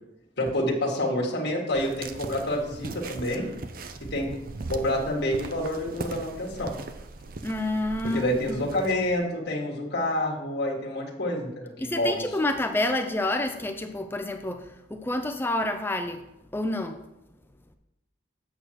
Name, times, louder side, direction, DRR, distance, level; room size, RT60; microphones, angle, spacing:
voice 1, 0.4-3.5 4.1-4.3 4.7-6.7 8.1-12.2, left 1 dB, 60° left, -3 dB, 1.7 m, -28 dB
sound 1, 1.7-9.2, right 3 dB, 50° right, 0.5 m, -39 dB
voice 2, 7.4-8.6 11.8-16.2 16.5-17.0, left 1 dB, 10° left, 7 dB, 0.4 m, -28 dB
8.5 x 6.3 x 4.6 m, 0.91 s
head